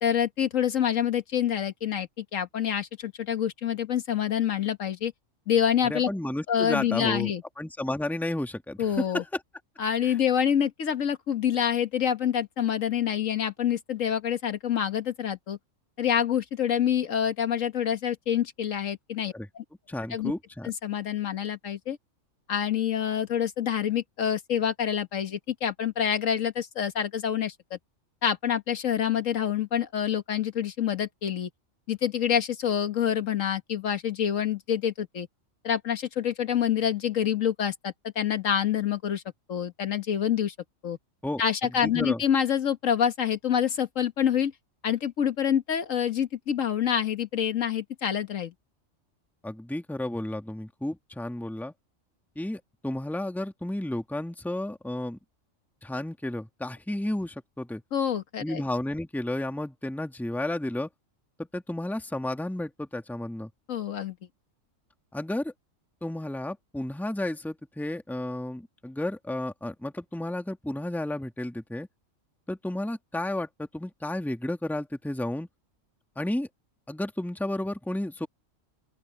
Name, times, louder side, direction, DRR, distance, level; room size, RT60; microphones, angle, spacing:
voice 1, 0.0-5.1 5.5-6.1 6.5-7.4 8.8-9.2 9.8-15.6 16.0-19.6 20.1-20.3 20.6-22.0 22.5-27.8 28.2-31.5 31.9-35.3 35.6-39.2 39.5-40.5 40.8-41.0 41.4-44.5 44.8-48.5 57.9-58.6 63.7-64.2, left 9 dB, 80° left, 1.7 m, -27 dB
voice 2, 5.8-9.4 10.0-10.2 19.3-19.5 19.9-20.7 41.2-42.2 49.4-51.7 52.4-55.2 55.8-57.8 58.4-60.9 61.4-63.5 65.1-65.5 66.0-71.9 72.5-75.5 76.2-76.5 76.9-78.3, left 1 dB, ahead, 1.7 m, -32 dB
open air
omnidirectional pair, 1.3 m